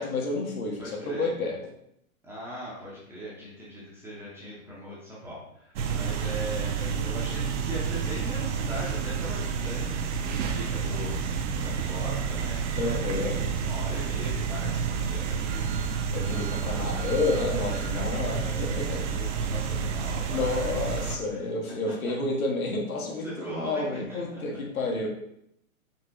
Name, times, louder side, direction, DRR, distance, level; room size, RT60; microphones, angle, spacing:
voice 1, 0.0-1.6 12.8-13.4 16.1-19.1 20.3-25.1, left 3 dB, 80° left, 0 dB, 1.1 m, -30 dB
voice 2, 0.8-1.3 2.2-11.2 11.6-12.7 13.1-15.7 16.3-20.7 21.0-21.5 23.2-24.6, equal, 5° right, -7 dB, 0.5 m, -40 dB
sound 1, 5.8-21.2, right 6 dB, 60° right, 0.6 m, -30 dB
sound 2, 10.6-18.7, left 1 dB, 50° left, 0.7 m, -42 dB
4.5 x 2.8 x 2.5 m, 0.75 s
hypercardioid pair, 125°, 42 cm